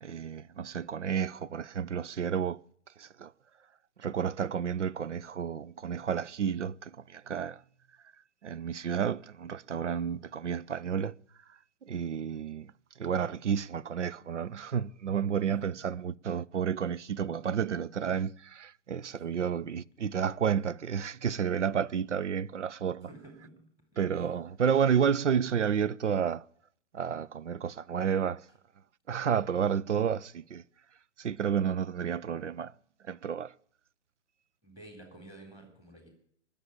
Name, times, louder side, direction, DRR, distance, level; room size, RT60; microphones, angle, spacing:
voice 1, 0.0-2.6 3.0-3.3 4.0-7.6 8.4-11.1 11.8-12.7 13.0-23.1 24.0-26.5 26.9-28.5 29.1-30.6 31.2-32.7 33.0-33.5, right 7 dB, 80° right, 0.6 m, -31 dB
voice 2, 15.5-15.8 19.2-19.6 23.0-23.7 34.6-36.1, right 1 dB, 10° right, 3.5 m, -51 dB
20.0 x 6.9 x 8.5 m
figure-of-eight pair, 125°, 35 cm